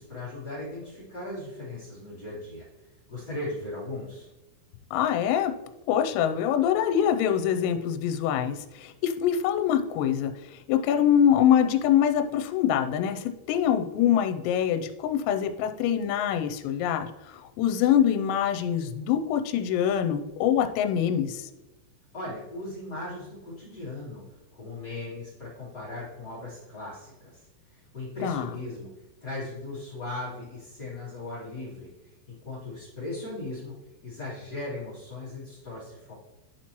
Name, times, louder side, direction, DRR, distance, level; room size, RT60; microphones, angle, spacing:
voice 1, 0.0-2.7 3.1-4.3 22.1-28.9 29.2-33.8 34.0-36.1, left 2 dB, 35° left, -9 dB, 1.5 m, -38 dB
voice 2, 4.9-5.5 5.9-21.5 28.2-28.5, left 9 dB, 85° left, 6 dB, 3.3 m, -24 dB
11.5 x 4.4 x 3.0 m, 1.0 s
omnidirectional pair, 5.9 m